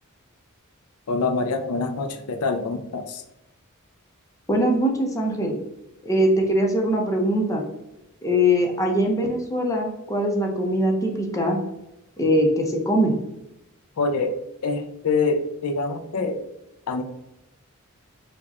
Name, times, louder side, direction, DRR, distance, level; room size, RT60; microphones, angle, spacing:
voice 1, 1.1-3.2 14.0-14.3 14.6-16.4 16.9-17.0, left 3 dB, 85° left, 8 dB, 0.5 m, -25 dB
voice 2, 4.5-5.6 6.0-7.6 8.2-11.6 12.2-13.1, equal, 15° left, 0 dB, 0.7 m, -22 dB
4.7 x 2.3 x 4.1 m, 0.89 s
head